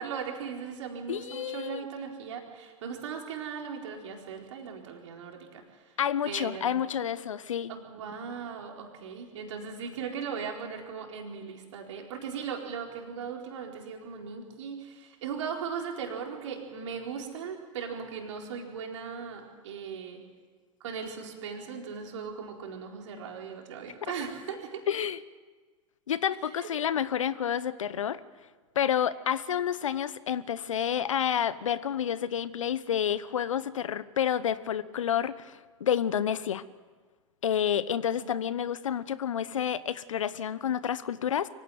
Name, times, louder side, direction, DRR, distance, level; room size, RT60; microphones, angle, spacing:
voice 1, 0.0-5.9 6.2-6.9 7.7-20.2 20.8-24.8 26.6-26.7 38.1-38.4, right 6 dB, 65° right, 1 dB, 4.3 m, -38 dB
voice 2, 1.1-1.8 6.0-7.7 24.9-25.2 26.1-28.2 28.7-36.6 37.4-41.5, left 9 dB, 75° left, 17 dB, 0.9 m, -29 dB
24.0 x 16.5 x 9.3 m, 1.4 s
figure-of-eight pair, 90°, 17 cm